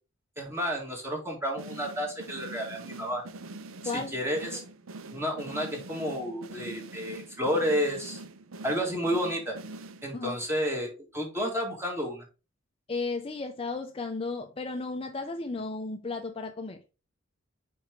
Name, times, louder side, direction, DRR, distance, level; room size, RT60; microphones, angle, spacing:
voice 1, 0.4-3.2 3.8-4.6 5.1-8.2 8.6-9.6 10.0-12.2, equal, 15° right, 1.8 m, -31 dB
sound 1, 1.6-10.4, right 2 dB, 85° right, 0.6 m, -44 dB
voice 2, 12.9-16.8, left 3 dB, 25° left, 0.5 m, -34 dB
5.8 x 4.6 x 3.8 m
head